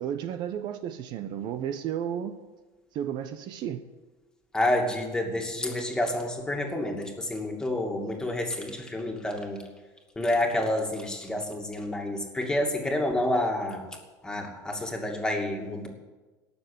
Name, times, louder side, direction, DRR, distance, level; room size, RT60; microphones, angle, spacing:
voice 1, 0.0-2.4 2.9-3.8, right 9 dB, 55° right, 11 dB, 0.9 m, -33 dB
voice 2, 4.5-9.6 10.2-13.9 14.2-15.9, left 1 dB, 10° left, 1 dB, 2.5 m, -29 dB
17.5 x 7.1 x 8.5 m, 1.2 s
supercardioid pair, 135°, 9 cm